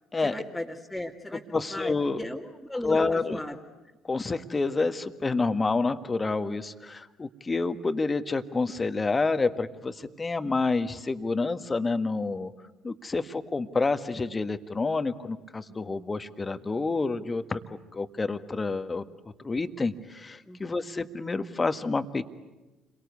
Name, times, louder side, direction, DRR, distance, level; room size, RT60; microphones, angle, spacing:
voice 1, 0.2-3.6 20.4-20.7, left 1 dB, 5° left, -4 dB, 2.3 m, -36 dB
voice 2, 1.3-2.2 2.8-3.4 4.0-12.5 12.8-17.6 17.9-19.0 19.4-22.2, left 3 dB, 25° left, 10 dB, 1.6 m, -28 dB
30.0 x 23.0 x 8.3 m, 1.1 s
figure-of-eight pair, 50°, 0 cm